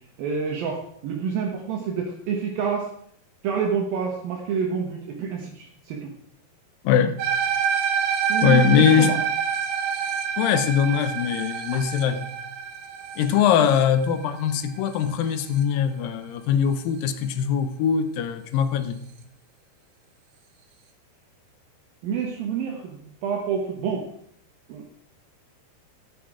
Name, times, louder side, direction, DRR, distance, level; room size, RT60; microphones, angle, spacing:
voice 1, 0.2-2.9 3.4-6.1 8.3-8.6 8.9-9.2 14.1-14.2 22.0-24.1 24.7-24.9, right 6 dB, 70° right, 0 dB, 2.9 m, -28 dB
voice 2, 6.8-7.2 8.4-9.1 10.4-12.3 13.2-19.0, left 8 dB, 75° left, 11 dB, 2.2 m, -21 dB
sound 1, 7.2-15.6, right 7 dB, 90° right, 3.5 m, -27 dB
13.5 x 10.0 x 4.9 m, 0.68 s
omnidirectional pair, 4.7 m